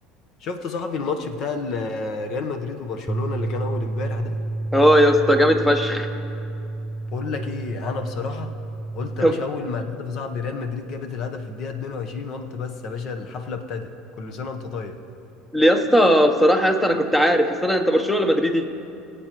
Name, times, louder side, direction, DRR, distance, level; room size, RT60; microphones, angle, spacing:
voice 1, 0.4-4.4 7.1-8.5 8.9-15.0, left 4 dB, 50° left, 6 dB, 1.0 m, -30 dB
sound 1, 3.1-9.3, right 2 dB, 20° right, 0.4 m, -30 dB
voice 2, 4.7-6.1 9.2-9.3 15.5-18.6, equal, 5° left, 7 dB, 0.9 m, -18 dB
22.5 x 8.5 x 3.0 m, 2.8 s
supercardioid pair, 120°, 0 cm